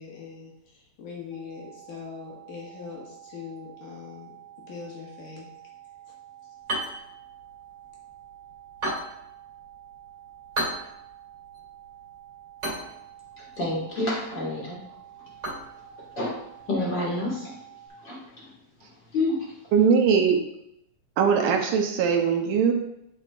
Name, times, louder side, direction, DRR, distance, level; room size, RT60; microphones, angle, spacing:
voice 1, 0.0-4.3 4.6-5.5, left 5 dB, 70° left, -3 dB, 3.2 m, -41 dB
sound 1, 1.3-17.9, right 12 dB, 20° left, 2.4 m, -49 dB
sound 2, 6.6-16.7, right 1 dB, 20° right, 2.3 m, -37 dB
voice 2, 13.4-14.8 15.9-16.4 16.7-17.5 18.0-18.5 19.1-19.5, left 2 dB, 40° left, -5 dB, 2.1 m, -29 dB
voice 3, 19.7-20.4 21.2-22.7, right 6 dB, 75° right, 3 dB, 2.3 m, -21 dB
10.0 x 6.2 x 2.5 m, 0.79 s
omnidirectional pair, 3.9 m